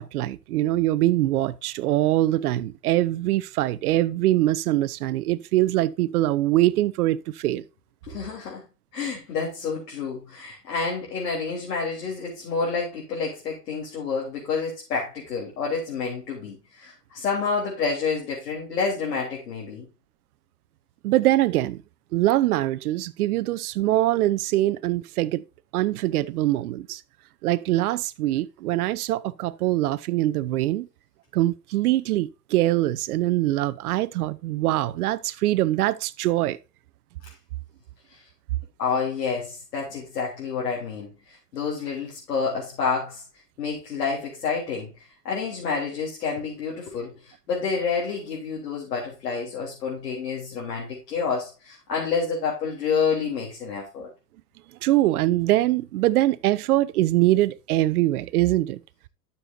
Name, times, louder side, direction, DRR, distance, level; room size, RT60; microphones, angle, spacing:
voice 1, 0.0-7.6 21.0-21.8 22.1-25.4 25.7-27.0 27.4-30.9 31.3-36.6 54.8-58.8, right 15 dB, 65° right, 0.7 m, -23 dB
voice 2, 8.1-8.6 8.9-19.9 38.8-41.1 41.5-43.2 43.6-44.9 45.3-54.1, left 5 dB, 75° left, 3.7 m, -29 dB
12.0 x 6.9 x 2.7 m
hypercardioid pair, 100°, 48 cm